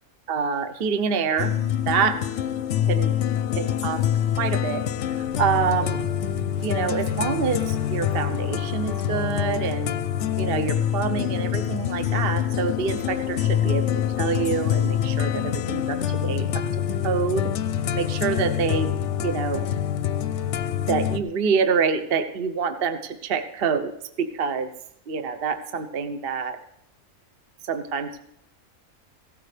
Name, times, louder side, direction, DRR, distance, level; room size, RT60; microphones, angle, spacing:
voice 1, 0.3-1.5 1.9-2.2 2.9-3.1 3.6-4.0 4.4-4.8 5.2-6.0 6.6-9.9 10.4-16.6 17.0-17.5 17.9-18.9 19.2-19.6 20.9-23.9 24.2-24.7 25.1-26.6 27.7-28.2, right 6 dB, 50° right, 8 dB, 0.8 m, -26 dB
sound 1, 1.4-21.2, left 10 dB, 65° left, 0.8 m, -25 dB
sound 2, 5.2-10.8, equal, 80° right, 3.7 m, -48 dB
16.0 x 12.5 x 3.3 m, 0.75 s
omnidirectional pair, 1.5 m